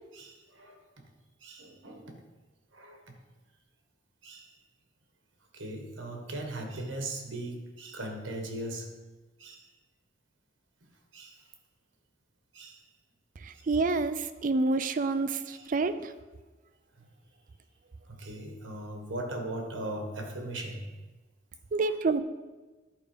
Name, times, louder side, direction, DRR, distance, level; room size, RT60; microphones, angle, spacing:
voice 1, 0.1-0.8 1.4-2.2 2.7-3.1 4.2-4.5 5.5-8.9 9.4-9.7 11.1-11.5 12.5-12.8 13.5-13.6 15.5-15.7 17.0-17.1 18.1-20.9 21.8-21.9, right 1 dB, 90° right, 3 dB, 1.5 m, -39 dB
voice 2, 13.4-16.1 21.7-22.2, right 3 dB, 45° right, 12 dB, 0.4 m, -28 dB
11.0 x 4.8 x 5.2 m, 1.2 s
head